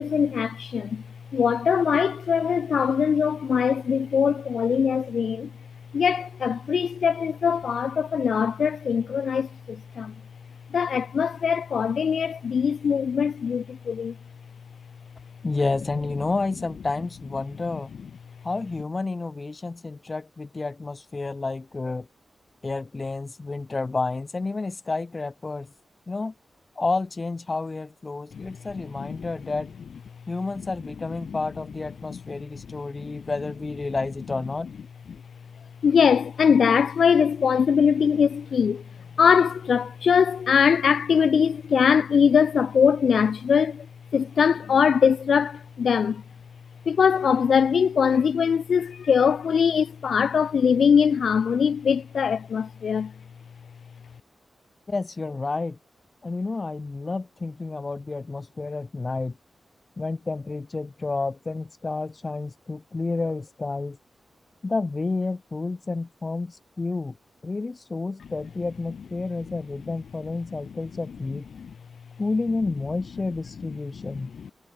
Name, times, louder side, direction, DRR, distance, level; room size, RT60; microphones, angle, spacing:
voice 1, 0.0-5.5 5.9-10.2 10.7-14.2 28.3-28.5 28.7-29.3 31.3-31.4 32.1-32.2 32.7-33.2 35.8-43.9 44.1-46.2 46.9-53.1 71.5-71.7 74.1-74.5, left 7 dB, 80° left, 0.4 m, -22 dB
voice 2, 15.4-17.9 18.4-22.1 22.6-25.7 26.1-26.3 26.8-29.7 30.3-34.7 54.9-55.8 56.2-59.4 60.0-64.0 64.6-67.2 67.4-71.5 72.2-74.3, left 3 dB, 35° left, 2.9 m, -30 dB
wide cardioid pair, 100°, 0 cm